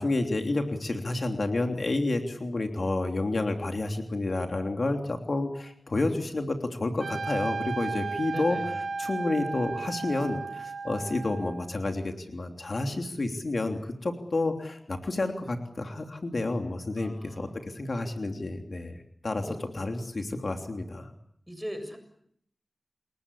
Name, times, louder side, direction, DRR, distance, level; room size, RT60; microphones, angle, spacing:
voice 1, 0.0-8.6 9.0-19.0 19.2-19.4 19.7-21.1, left 2 dB, 55° left, 4 dB, 3.2 m, -30 dB
Trumpet, 7.0-11.7, right 4 dB, 90° right, 2.1 m, -34 dB
voice 2, 8.3-8.8 17.0-17.6 19.4-19.6 21.5-22.0, equal, 5° right, 8 dB, 7.3 m, -39 dB
29.5 x 21.0 x 8.5 m, 0.69 s
wide cardioid pair, 65°, 0 cm